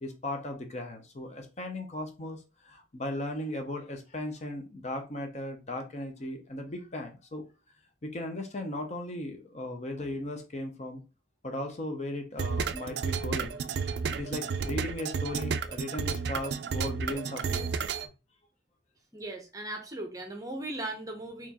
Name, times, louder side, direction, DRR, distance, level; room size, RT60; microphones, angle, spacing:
voice 1, 0.0-7.4 8.0-11.0 11.4-13.6 14.1-18.1, left 1 dB, 35° left, 0.6 m, -37 dB
sound 1, 12.4-18.1, right 5 dB, 60° right, 0.3 m, -32 dB
voice 2, 19.1-21.5, right 2 dB, 20° right, 0.7 m, -38 dB
4.2 x 2.9 x 2.8 m
head